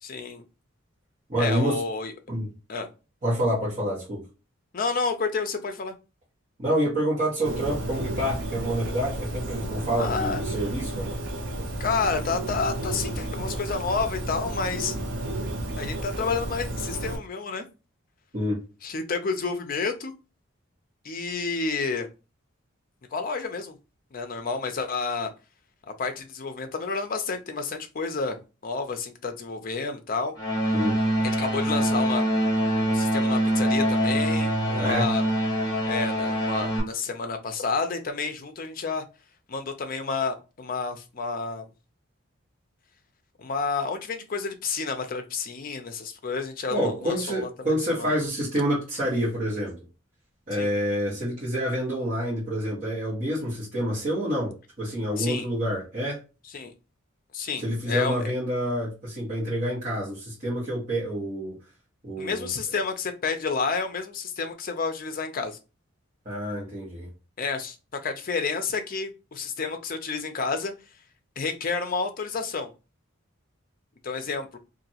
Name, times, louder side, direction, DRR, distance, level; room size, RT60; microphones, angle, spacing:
voice 1, 0.0-0.4 1.4-2.1 2.7-2.9 4.7-5.9 10.0-10.4 11.8-15.0 15.8-17.6 18.8-20.1 21.0-22.1 23.1-23.7 24.1-25.3 25.8-30.3 31.2-32.2 32.9-35.2 35.9-39.0 39.5-41.7 43.4-47.5 48.0-48.1 50.6-50.7 55.2-55.5 56.5-56.7 57.3-58.3 62.2-65.6 67.4-67.8 68.0-70.7 71.4-72.7 74.0-74.6, left 4 dB, 45° left, 0.5 m, -30 dB
voice 2, 1.3-1.8 2.3-2.5 3.2-4.2 6.6-11.1 18.3-18.6 30.7-31.0 34.7-35.1 46.7-49.7 50.5-56.2 57.6-61.5 62.0-62.5 66.2-67.1, equal, 40° right, 1.3 m, -27 dB
Bird, 7.4-17.2, right 1 dB, 60° right, 0.6 m, -32 dB
sound 1, 30.4-36.8, right 1 dB, 20° left, 1.1 m, -24 dB
2.9 x 2.6 x 2.8 m
head